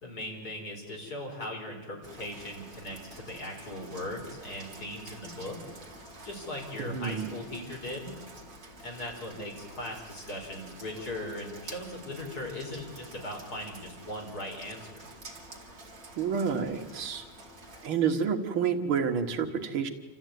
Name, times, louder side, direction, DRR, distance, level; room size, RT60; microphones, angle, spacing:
voice 1, 0.0-5.7 6.2-8.1 8.8-15.0, left 1 dB, 45° left, 0 dB, 5.2 m, -39 dB
Rain, 2.0-17.9, right 1 dB, 45° right, 2.9 m, -48 dB
voice 2, 6.8-7.3 16.2-17.2 17.8-19.9, right 6 dB, 80° right, 5 dB, 2.4 m, -29 dB
28.0 x 14.0 x 9.4 m, 1.2 s
omnidirectional pair, 2.3 m